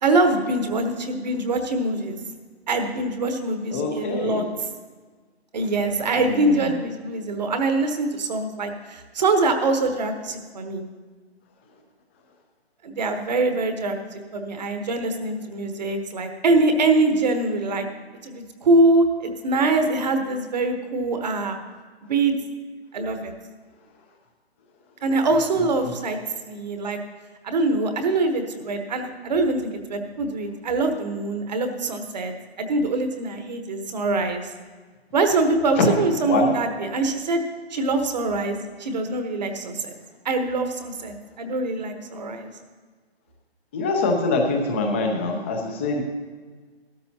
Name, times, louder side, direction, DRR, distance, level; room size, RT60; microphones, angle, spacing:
voice 1, 0.0-2.2 2.7-4.7 5.5-10.8 12.8-17.9 18.2-21.6 22.1-22.3 22.9-23.3 25.0-26.2 26.4-27.0 27.4-34.5 35.1-37.4 37.7-39.9 40.2-42.5, right 2 dB, 40° right, 6 dB, 1.2 m, -24 dB
voice 2, 3.7-4.4 6.2-6.7 25.8-25.9 35.8-35.9 36.3-36.5 43.7-46.0, left 3 dB, 10° left, 3 dB, 0.7 m, -24 dB
15.0 x 13.0 x 2.8 m, 1.5 s
hypercardioid pair, 155°, 32 cm